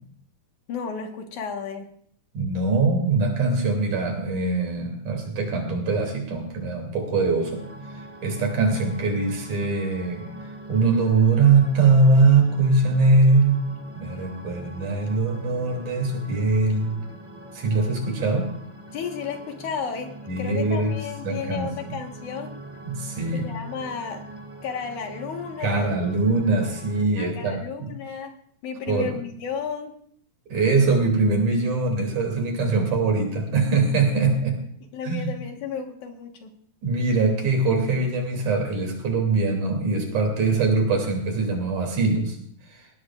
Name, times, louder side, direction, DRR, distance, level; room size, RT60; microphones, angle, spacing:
voice 1, 0.7-1.9 18.9-20.1 20.4-22.5 23.3-24.2 24.6-25.9 27.2-28.3 28.6-29.9 34.9-36.5, left 6 dB, 80° left, 4 dB, 2.9 m, -33 dB
voice 2, 2.3-7.6 8.2-10.2 10.7-13.6 14.0-17.0 17.5-18.5 20.3-20.9 21.2-22.0 22.8-23.5 25.6-27.9 28.9-29.1 30.5-34.6 35.0-35.3 36.8-42.4 42.7-42.8, right 3 dB, 75° right, 2 dB, 4.3 m, -22 dB
sound 1, 7.4-27.0, right 1 dB, 5° right, 1.5 m, -42 dB
20.0 x 17.0 x 2.5 m, 0.63 s
omnidirectional pair, 3.4 m